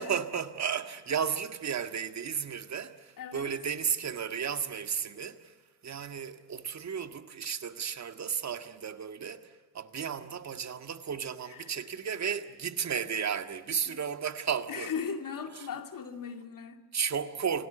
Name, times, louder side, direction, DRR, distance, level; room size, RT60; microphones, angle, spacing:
voice 1, 0.0-5.6 5.8-14.9 15.5-15.7 16.9-17.7, right 7 dB, 35° right, 1.8 m, -34 dB
voice 2, 3.2-3.5 11.5-11.7 13.8-14.0 14.7-16.8, left 6 dB, 40° left, 2.6 m, -38 dB
28.0 x 18.5 x 8.2 m
hypercardioid pair, 60°, 49 cm